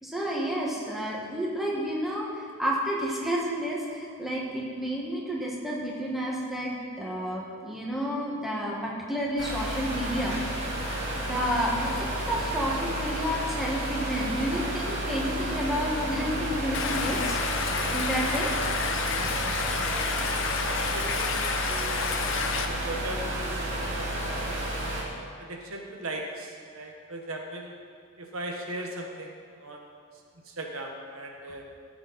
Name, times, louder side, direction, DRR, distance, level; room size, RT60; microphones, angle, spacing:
voice 1, 0.0-10.4 10.7-10.9 11.2-17.4 17.9-18.5 19.2-19.4, equal, ahead, -5 dB, 1.6 m, -30 dB
sound 1, 9.4-25.0, right 1 dB, 55° right, 2.4 m, -31 dB
Stream, 16.7-22.7, left 6 dB, 60° left, 0.7 m, -30 dB
voice 2, 19.5-20.4 20.7-22.3 22.6-24.1 24.8-27.7 28.2-31.6, right 1 dB, 75° right, 2 dB, 1.3 m, -39 dB
15.0 x 7.7 x 4.2 m, 2.2 s
head